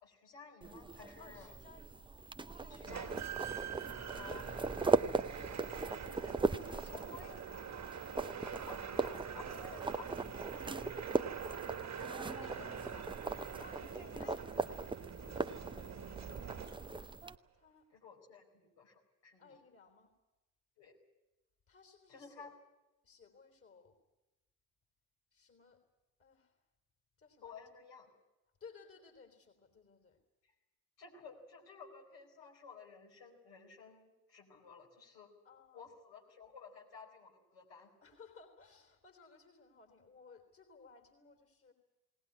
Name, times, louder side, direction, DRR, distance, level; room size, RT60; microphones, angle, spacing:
voice 1, 0.0-1.5 2.7-3.3 4.1-4.6 6.9-7.8 8.6-10.2 10.5-12.1 13.8-14.7 17.9-19.6 20.8-20.9 22.1-22.5 27.4-28.1 30.4-30.5 31.0-35.3 35.7-37.9, left 5 dB, 65° left, -1 dB, 4.7 m, -55 dB
sound 1, 0.6-17.4, right 3 dB, 10° right, 0.7 m, -39 dB
voice 2, 1.2-2.1 2.6-3.4 3.8-4.6 5.4-8.0 12.1-13.1 13.5-13.8 14.2-14.4 15.4-16.0 17.5-17.9 19.4-20.1 21.7-22.5 23.0-24.0 25.3-25.8 26.2-26.6 27.2-27.6 28.6-30.2 35.4-35.9 38.0-41.7, left 5 dB, 30° left, 6 dB, 3.6 m, -59 dB
sound 2, 2.9-17.1, right 7 dB, 35° right, 1.8 m, -45 dB
20.0 x 18.5 x 9.8 m, 1.0 s
figure-of-eight pair, 50°, 46 cm